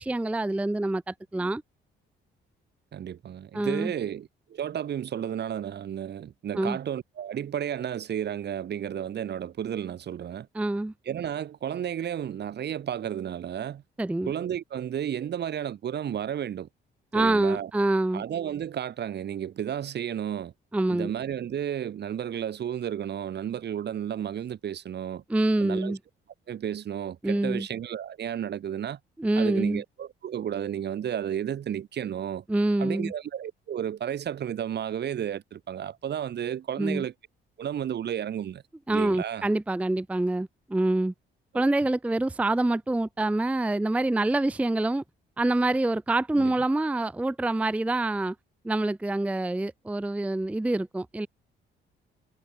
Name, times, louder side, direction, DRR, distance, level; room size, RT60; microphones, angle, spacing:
voice 1, 0.0-1.6 3.5-3.9 6.6-6.8 10.5-10.9 14.0-14.3 17.1-18.2 20.7-21.1 25.3-26.0 27.2-27.7 29.2-29.8 32.5-33.1 36.8-37.0 38.9-41.1 41.5-45.0 45.4-48.4 48.6-51.3, right 2 dB, 5° right, 0.5 m, -26 dB
voice 2, 2.9-10.5 11.0-13.8 14.3-16.7 17.1-17.7 18.1-20.5 20.9-25.2 25.6-25.9 26.5-29.0 29.4-32.4 32.8-37.1 37.6-38.6 38.9-39.5 41.5-41.6 46.4-46.5, right 9 dB, 60° right, 1.8 m, -32 dB
cardioid pair, 90°, 20 cm